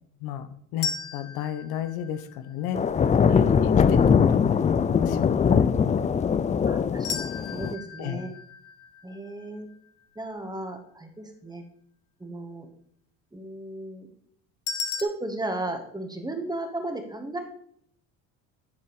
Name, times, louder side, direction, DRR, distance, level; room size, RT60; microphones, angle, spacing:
voice 1, 0.2-2.8 3.2-6.1 8.0-8.2, left 10 dB, 70° left, 10 dB, 1.0 m, -33 dB
sound 1, 0.8-2.9 7.0-10.2 14.7-15.0, left 5 dB, 55° left, 1.3 m, -36 dB
sound 2, 2.7-7.7, left 6 dB, 20° left, 0.4 m, -21 dB
voice 2, 6.6-8.3 9.0-9.7 10.1-11.6 12.2-12.7 13.3-14.1 15.0-17.4, right 2 dB, 10° right, 5 dB, 1.7 m, -35 dB
11.0 x 4.7 x 4.9 m, 0.66 s
supercardioid pair, 80°, 39 cm